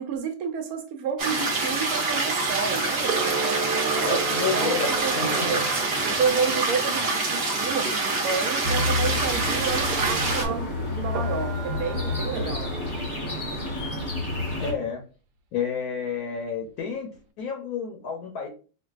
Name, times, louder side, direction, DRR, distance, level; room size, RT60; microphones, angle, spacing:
voice 1, 0.0-4.2 4.5-5.6 6.0-12.7, right 6 dB, 70° right, 5 dB, 1.0 m, -30 dB
sound 1, 1.2-10.4, right 3 dB, 50° right, 0.9 m, -26 dB
Camera, 2.9-6.2 9.8-10.5 11.1-12.9, right 5 dB, 85° right, 1.2 m, -33 dB
voice 2, 4.0-5.6 14.6-15.0 15.5-17.1 17.4-18.5, left 6 dB, 70° left, 2 dB, 1.1 m, -30 dB
sound 2, 8.6-14.7, left 2 dB, 30° left, 0.6 m, -29 dB
4.5 x 2.3 x 2.4 m, 0.36 s
omnidirectional pair, 1.7 m